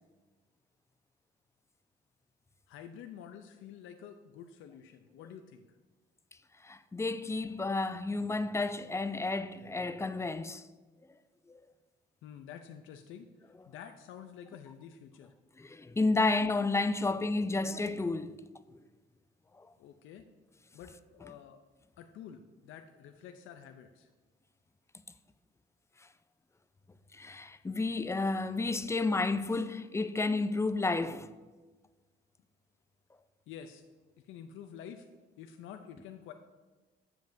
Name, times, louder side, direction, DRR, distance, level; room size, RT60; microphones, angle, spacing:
voice 1, 2.7-5.7 12.2-13.3 13.7-15.3 19.8-20.3 20.7-21.6 22.0-24.1 33.5-33.8 34.2-35.1 35.4-36.3, left 8 dB, 80° left, 0.5 m, -49 dB
voice 2, 6.6-10.6 15.6-18.4 19.6-19.7 27.1-31.3, left 3 dB, 15° left, 0.3 m, -31 dB
7.3 x 7.3 x 2.6 m
cardioid pair, 90°, 20 cm